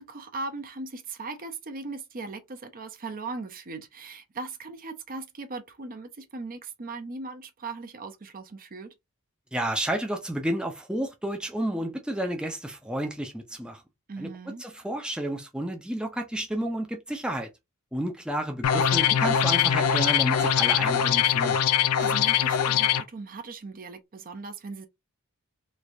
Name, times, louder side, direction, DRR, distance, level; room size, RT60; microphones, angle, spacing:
voice 1, 0.0-8.9 14.1-14.6 22.0-24.9, right 3 dB, 40° right, 0.6 m, -38 dB
voice 2, 9.5-13.8 14.2-14.3 14.6-17.5 17.9-21.6, right 1 dB, 5° right, 0.5 m, -31 dB
sound 1, 18.6-23.0, left 9 dB, 85° left, 0.4 m, -22 dB
3.2 x 3.2 x 2.6 m
head